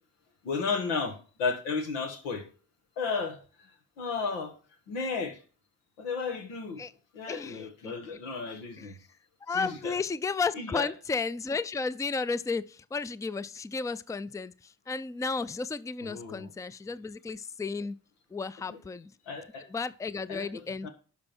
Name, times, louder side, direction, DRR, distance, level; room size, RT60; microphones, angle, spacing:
voice 1, 0.4-2.4 3.0-3.4 4.0-4.5 4.9-5.4 6.0-6.8 7.1-8.9 9.5-10.0 10.5-10.9 16.0-16.5 18.7-18.8 19.3-19.7 20.3-20.9, left 4 dB, 85° left, 1.5 m, -33 dB
voice 2, 7.3-7.9 8.8-8.9 9.4-18.0 18.3-19.1 19.7-20.9, left 4 dB, 10° left, 0.5 m, -33 dB
11.5 x 5.6 x 4.5 m
hypercardioid pair, 40°, 39 cm